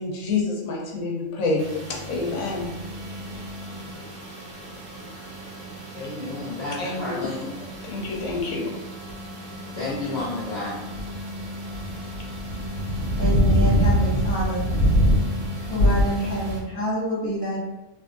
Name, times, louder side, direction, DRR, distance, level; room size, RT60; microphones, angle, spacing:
voice 1, 0.0-1.7 2.1-2.7 6.8-7.5 7.8-8.7, left 3 dB, 80° left, -1 dB, 1.1 m, -27 dB
sound 1, 1.6-16.6, equal, 65° right, 1.2 m, -27 dB
voice 2, 5.9-7.5 9.8-10.8, left 2 dB, 55° left, -7 dB, 0.9 m, -31 dB
voice 3, 13.1-14.6 15.7-17.6, right 1 dB, 10° left, -7 dB, 1.4 m, -27 dB
3.4 x 3.0 x 2.5 m, 1.0 s
omnidirectional pair, 1.5 m